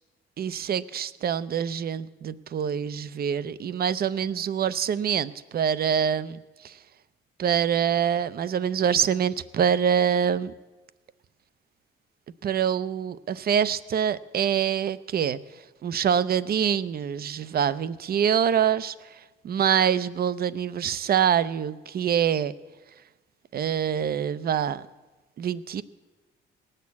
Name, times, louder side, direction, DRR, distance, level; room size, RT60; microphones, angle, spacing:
voice 1, 0.4-6.8 7.4-10.5 12.4-15.4 15.8-19.2 19.4-22.5 23.5-24.8 25.4-25.8, right 8 dB, 50° right, 16 dB, 0.6 m, -25 dB
18.0 x 6.6 x 8.3 m, 1.2 s
cardioid pair, 90°, 20 cm